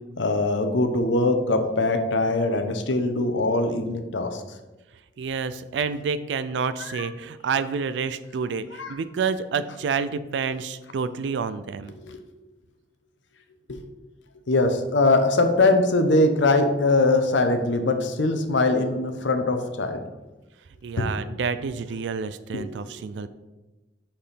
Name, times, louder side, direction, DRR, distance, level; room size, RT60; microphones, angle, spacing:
voice 1, 0.2-4.4 7.0-7.1 8.8-8.9 12.0-12.2 14.5-20.0 21.0-21.1 22.5-23.0, left 2 dB, 85° left, 7 dB, 0.8 m, -22 dB
voice 2, 5.2-11.9 20.8-23.3, right 5 dB, 75° right, 13 dB, 0.4 m, -29 dB
5.2 x 4.4 x 5.6 m, 1.1 s
head